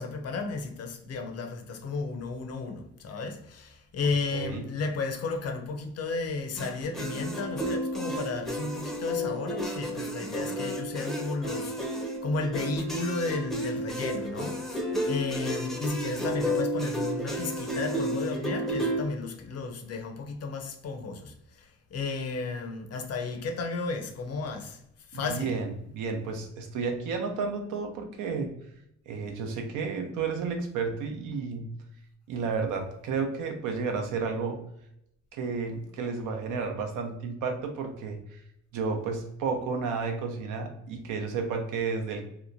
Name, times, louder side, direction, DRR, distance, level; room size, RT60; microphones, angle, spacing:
voice 1, 0.0-24.8 25.1-25.5, left 3 dB, 55° left, 0.6 m, -33 dB
voice 2, 4.3-4.6 25.1-28.5 29.1-31.7 32.3-34.6 35.3-38.4 38.7-42.3, right 5 dB, 90° right, 0.6 m, -32 dB
sound 1, 6.6-19.0, equal, ahead, 0.5 m, -32 dB
2.9 x 2.1 x 2.5 m
cardioid pair, 90°, 30 cm